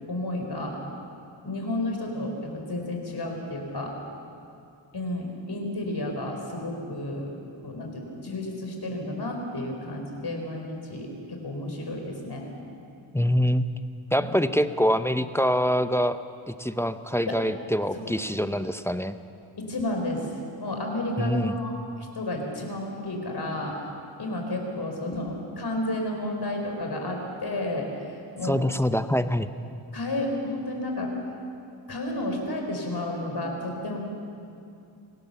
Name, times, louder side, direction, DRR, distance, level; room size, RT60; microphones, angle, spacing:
voice 1, 0.1-0.8 1.4-3.9 4.9-7.3 7.6-12.5 14.2-14.4 17.3-17.4 17.9-18.0 19.6-20.3 20.6-23.8 24.2-28.6 29.9-31.1 31.9-34.0, left 1 dB, 50° left, 2 dB, 4.6 m, -31 dB
voice 2, 13.1-13.7 14.1-16.2 16.5-19.2 21.2-21.5 28.4-29.5, equal, 5° left, 10 dB, 0.7 m, -25 dB
25.5 x 18.0 x 7.0 m, 2.5 s
wide cardioid pair, 105°, 48 cm